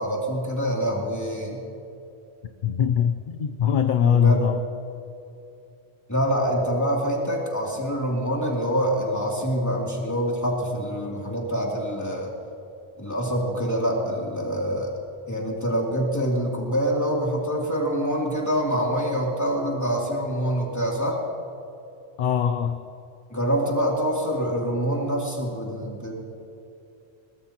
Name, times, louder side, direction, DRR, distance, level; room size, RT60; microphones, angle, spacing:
voice 1, 0.0-1.6 4.1-4.4 6.1-12.3 13.0-14.9 15.3-21.2 23.3-26.1, equal, 15° left, -3 dB, 2.8 m, -25 dB
voice 2, 2.6-4.6 22.2-22.8, left 8 dB, 55° left, 8 dB, 0.7 m, -22 dB
22.0 x 19.5 x 2.9 m, 2.7 s
omnidirectional pair, 1.1 m